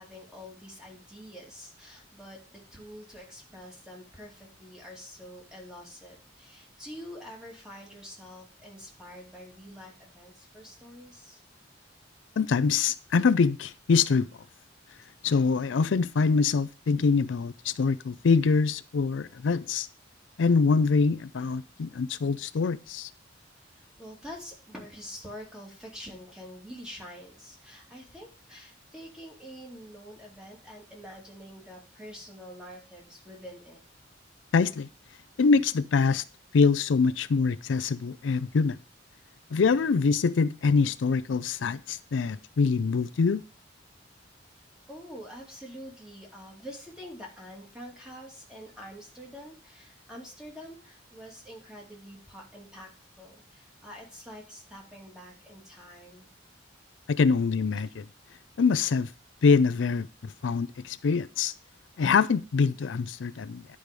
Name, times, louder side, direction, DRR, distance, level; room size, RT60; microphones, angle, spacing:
voice 1, 0.0-2.4 2.7-11.4 23.7-33.8 44.9-52.9 53.2-56.3, equal, 5° right, 2.7 m, -46 dB
voice 2, 12.4-14.3 15.2-19.9 20.4-23.1 34.5-34.9 35.4-36.2 36.5-38.8 39.5-43.4 57.1-58.1 58.6-59.1 59.4-61.5 62.0-63.7, left 5 dB, 85° left, 0.4 m, -24 dB
10.5 x 4.9 x 5.2 m
head